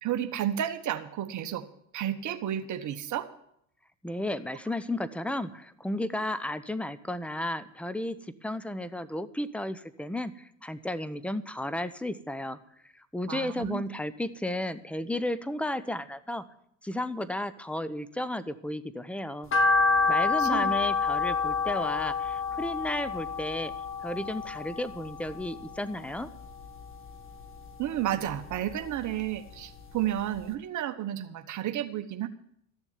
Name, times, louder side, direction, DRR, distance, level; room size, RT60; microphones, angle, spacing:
voice 1, 0.0-1.7 1.9-3.3 13.3-13.8 20.1-20.7 27.8-32.3, right 11 dB, 50° right, 8 dB, 1.2 m, -32 dB
voice 2, 4.0-12.6 13.0-16.4 16.8-19.5 20.1-23.7 24.0-26.3, left 1 dB, 5° left, 16 dB, 0.9 m, -33 dB
sound 1, 19.5-25.8 26.2-27.3 27.7-29.1 29.5-29.6 30.0-30.1 30.4-30.5, left 4 dB, 35° left, 2.0 m, -28 dB
14.0 x 7.1 x 9.5 m, 0.72 s
supercardioid pair, 90°, 38 cm